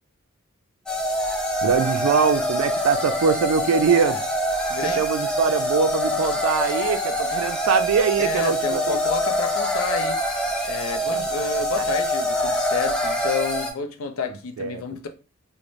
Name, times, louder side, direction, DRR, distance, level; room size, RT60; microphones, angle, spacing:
sound 1, 0.9-13.7, equal, 5° left, 0.3 m, -25 dB
voice 1, 1.6-4.2 4.8-9.0 11.1-11.5 11.8-11.9 14.6-14.8, right 6 dB, 80° right, 0.3 m, -23 dB
voice 2, 4.7-5.0 8.2-10.4 10.7-15.1, left 6 dB, 80° left, 0.4 m, -30 dB
3.0 x 2.1 x 2.5 m
head